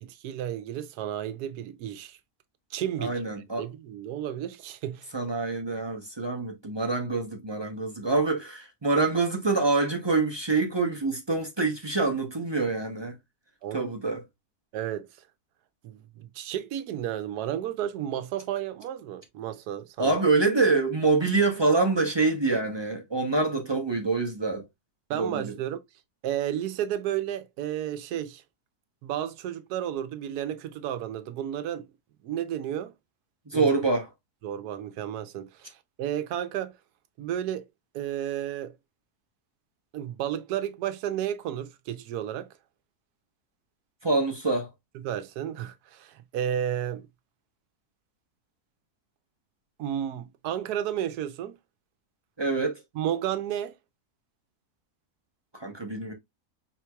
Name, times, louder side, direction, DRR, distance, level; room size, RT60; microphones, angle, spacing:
voice 1, 0.0-2.2 2.7-3.2 3.6-5.1 13.6-13.9 14.7-15.1 15.8-20.2 25.1-25.8 26.2-28.4 29.0-31.9 32.2-32.9 33.5-33.7 34.4-36.7 37.2-37.6 37.9-38.8 39.9-42.5 44.9-47.1 49.8-51.6 52.9-53.7, right 10 dB, 85° right, 1.1 m, -32 dB
voice 2, 3.0-3.7 5.1-13.1 13.7-14.2 20.0-24.6 25.1-25.5 33.5-34.1 44.0-44.7 52.4-52.8 55.5-56.1, right 3 dB, 25° right, 0.5 m, -26 dB
4.5 x 4.1 x 2.3 m
omnidirectional pair, 1.6 m